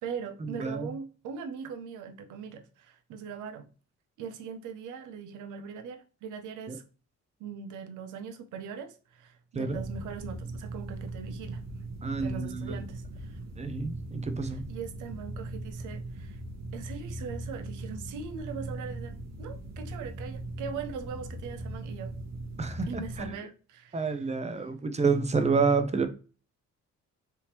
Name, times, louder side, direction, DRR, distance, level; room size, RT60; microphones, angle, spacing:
voice 1, 0.0-3.7 4.2-6.8 7.4-11.6 12.2-13.4 14.4-16.4 16.7-22.1 22.9-24.2, right 6 dB, 80° right, 0.6 m, -41 dB
sound 1, 9.7-23.3, right 2 dB, 60° right, 1.1 m, -39 dB
voice 2, 12.0-12.8 13.6-14.6 22.6-23.3 23.9-26.1, right 4 dB, 20° right, 0.5 m, -29 dB
3.4 x 2.9 x 2.9 m
cardioid pair, 90°, 30 cm